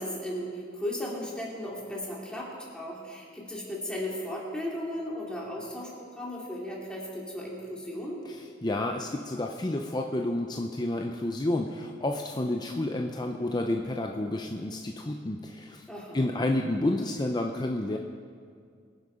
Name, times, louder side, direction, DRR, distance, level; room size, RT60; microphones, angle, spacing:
voice 1, 0.0-8.2 15.9-16.3, left 1 dB, 5° left, -4 dB, 2.6 m, -36 dB
voice 2, 8.3-15.8 16.1-18.0, left 1 dB, 20° left, 2 dB, 0.6 m, -30 dB
23.0 x 7.8 x 5.0 m, 2.2 s
head